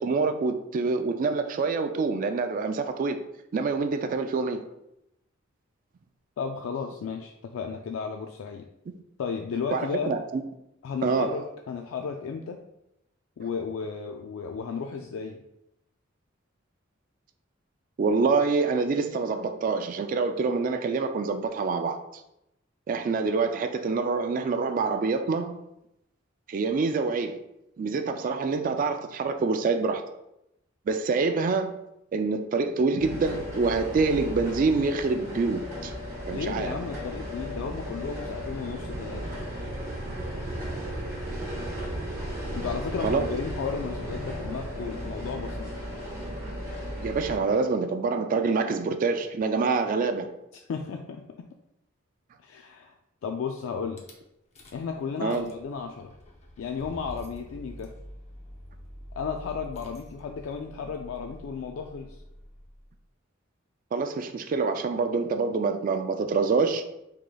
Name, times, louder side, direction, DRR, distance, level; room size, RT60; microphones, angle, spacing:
voice 1, 0.0-3.2 3.5-4.6 9.7-10.4 11.0-11.3 18.0-22.0 22.9-25.6 26.5-27.4 27.8-30.0 30.9-31.8 32.1-35.9 36.3-36.7 40.1-40.2 43.0-43.3 47.0-50.3 55.2-55.5 63.9-66.8, right 4 dB, 45° right, 0.3 m, -26 dB
voice 2, 6.4-8.7 9.2-10.1 10.8-12.6 13.4-15.4 36.3-39.3 42.5-45.7 50.7-51.4 52.4-52.9 53.2-54.0 54.7-56.1 56.6-57.9 59.1-62.2, left 6 dB, 80° left, 0.3 m, -34 dB
sound 1, 33.0-47.4, equal, 15° right, 1.3 m, -35 dB
Rattle / Car / Engine starting, 54.0-54.1 54.6-54.9 55.2-62.9, equal, 35° left, 0.7 m, -46 dB
4.9 x 3.7 x 2.2 m
head